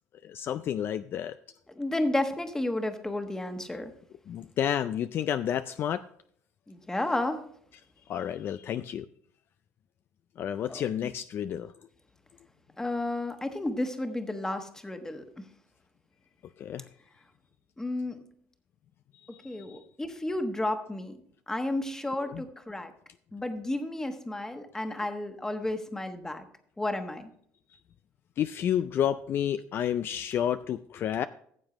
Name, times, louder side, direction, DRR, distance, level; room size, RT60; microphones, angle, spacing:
voice 1, 0.2-1.3 4.3-6.0 8.1-9.1 10.4-11.7 16.6-16.8 19.4-19.5 22.2-22.4 28.4-31.3, left 10 dB, 45° left, 12 dB, 0.3 m, -30 dB
voice 2, 1.7-3.9 6.7-7.4 10.7-10.8 12.8-15.3 17.8-18.2 19.4-21.2 21.5-22.9 23.3-26.4 26.8-27.3, left 1 dB, 10° left, 7 dB, 1.2 m, -32 dB
14.5 x 7.2 x 3.1 m, 0.65 s
cardioid pair, 105°, 5 cm